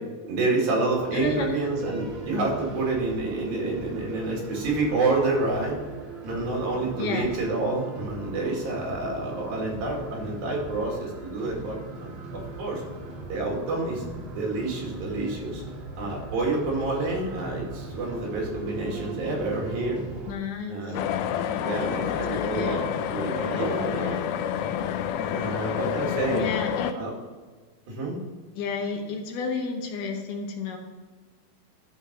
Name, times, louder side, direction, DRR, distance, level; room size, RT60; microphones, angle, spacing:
voice 1, 0.2-5.8 6.2-12.8 13.3-14.0 14.3-15.6 16.0-20.0 20.7-21.1 21.6-22.8 23.1-24.3 25.3-26.4 26.9-27.1 27.9-28.2, right 2 dB, 75° right, -2 dB, 4.1 m, -28 dB
sound 1, 0.9-20.3, right 2 dB, 45° right, 1.7 m, -39 dB
voice 2, 1.1-1.6 7.0-7.3 20.3-21.0 22.0-22.8 26.3-27.0 28.5-30.8, left 5 dB, 70° left, 3 dB, 2.3 m, -31 dB
sound 2, 20.9-26.9, left 9 dB, 85° left, 1.8 m, -28 dB
12.0 x 5.3 x 4.3 m, 1.4 s
omnidirectional pair, 4.3 m